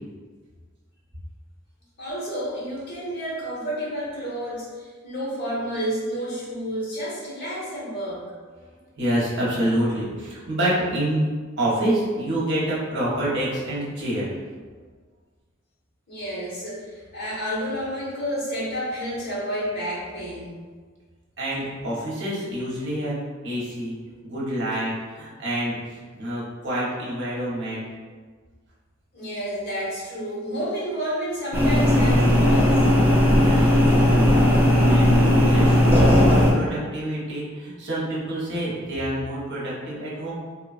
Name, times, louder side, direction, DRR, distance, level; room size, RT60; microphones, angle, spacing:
voice 1, 2.0-8.2 16.1-20.5 29.1-32.8, equal, 50° left, -7 dB, 1.0 m, -30 dB
voice 2, 9.0-11.2 11.6-14.3 21.4-23.2 23.4-24.0 24.2-27.9 33.3-35.2 35.5-40.3, right 1 dB, 60° right, -7 dB, 0.8 m, -27 dB
sound 1, 31.5-36.5, left 1 dB, 10° right, 0.5 m, -17 dB
3.0 x 2.2 x 2.4 m, 1.5 s
head